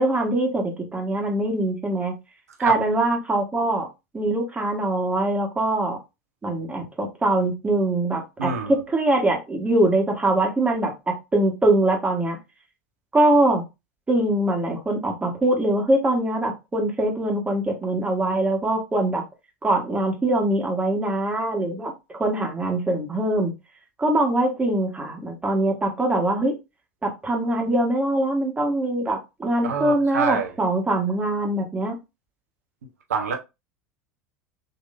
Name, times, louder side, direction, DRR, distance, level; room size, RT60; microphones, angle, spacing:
voice 1, 0.0-2.1 2.6-3.9 4.1-6.0 6.4-12.4 13.1-13.6 14.1-19.2 19.6-23.5 24.0-26.5 27.0-32.0, right 1 dB, 15° right, 1.4 m, -23 dB
voice 2, 8.4-8.8 29.6-30.5 33.1-33.3, right 6 dB, 80° right, 0.9 m, -26 dB
3.9 x 3.0 x 2.5 m
hypercardioid pair, 80°, 8 cm